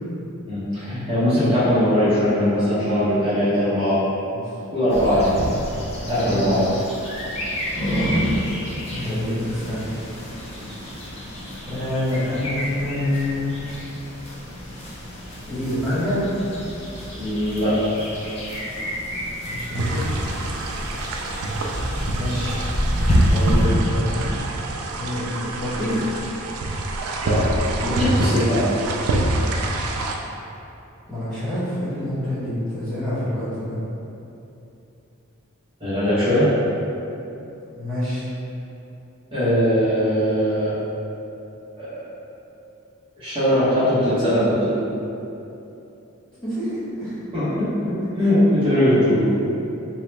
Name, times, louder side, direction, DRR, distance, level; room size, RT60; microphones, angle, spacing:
voice 1, 0.5-4.0 4.7-5.5 6.1-6.7 17.2-17.8 27.2-27.4 27.8-28.7 35.8-36.5 39.3-40.8 41.7-42.0 43.2-44.8 47.3-49.3, equal, 25° right, -14 dB, 0.9 m, -20 dB
sound 1, 4.9-23.7, equal, 30° left, 0.5 m, -28 dB
voice 2, 6.0-6.7 8.9-9.9 11.0-11.1 11.7-13.6 15.4-16.2 19.5-20.0 22.1-22.6 23.3-24.4 25.0-26.2 31.1-33.8 37.8-38.2 46.4-46.7 47.0-47.1 48.2-48.3, left 1 dB, 5° left, -15 dB, 1.1 m, -27 dB
sound 2, 19.7-30.2, right 2 dB, 85° right, 0.3 m, -26 dB
3.2 x 2.3 x 3.1 m, 2.9 s
head